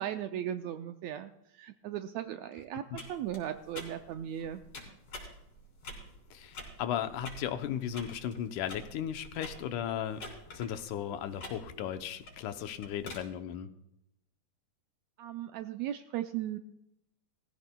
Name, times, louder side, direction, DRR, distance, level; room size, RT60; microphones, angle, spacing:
voice 1, 0.0-1.3 1.6-4.6 15.2-16.6, right 11 dB, 80° right, 7 dB, 1.6 m, -37 dB
sound 1, 2.9-13.2, left 2 dB, 50° left, 4.4 m, -48 dB
voice 2, 6.3-10.2 10.5-13.7, left 9 dB, 80° left, 9 dB, 2.3 m, -36 dB
20.0 x 15.0 x 2.3 m, 0.83 s
omnidirectional pair, 3.6 m